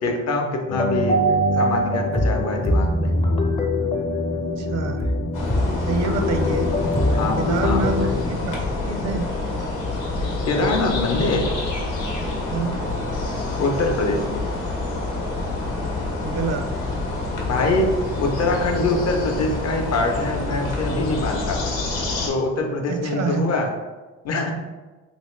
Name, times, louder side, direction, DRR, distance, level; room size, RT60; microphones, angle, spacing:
voice 1, 0.0-1.2 1.5-3.1 7.1-7.8 10.4-11.5 13.5-14.4 17.4-17.9 18.2-21.7 22.3-23.7 24.2-24.5, left 2 dB, 60° left, 2 dB, 0.7 m, -24 dB
sound 1, 0.7-8.3, left 1 dB, 20° left, 0.5 m, -22 dB
voice 2, 4.6-5.1 5.8-6.8 7.4-8.5 8.9-9.3 12.5-12.8 16.2-16.7 22.9-23.4, right 4 dB, 60° right, 6 dB, 0.5 m, -27 dB
sound 2, 5.3-22.3, left 2 dB, 85° left, 0.9 m, -27 dB
3.0 x 2.6 x 3.1 m, 1.2 s
cardioid pair, 90°, 30 cm